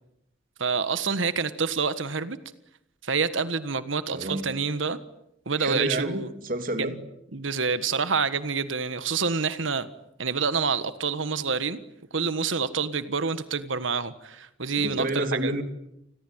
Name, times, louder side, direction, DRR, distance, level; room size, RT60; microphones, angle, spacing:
voice 1, 0.6-2.4 3.0-5.0 5.4-6.3 6.8-6.9 7.3-9.9 10.2-11.8 12.1-15.5, right 5 dB, 80° right, 13 dB, 1.5 m, -27 dB
voice 2, 4.1-4.5 5.6-7.0 14.8-15.6, right 1 dB, 45° right, 8 dB, 3.1 m, -29 dB
30.0 x 21.0 x 9.3 m, 0.82 s
head